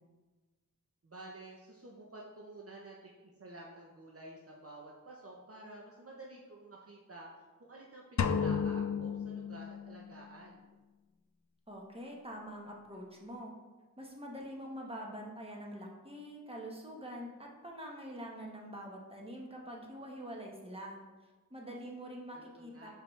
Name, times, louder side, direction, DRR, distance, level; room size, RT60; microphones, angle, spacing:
voice 1, 1.0-7.3 7.6-10.6 22.3-22.9, right 2 dB, 45° right, -2 dB, 0.8 m, -51 dB
sound 1, 8.2-10.2, left 6 dB, 60° left, 0.4 m, -33 dB
voice 2, 11.7-13.5 14.0-22.9, equal, 15° right, -1 dB, 1.3 m, -45 dB
6.1 x 5.0 x 3.3 m, 1.2 s
wide cardioid pair, 50°, 33 cm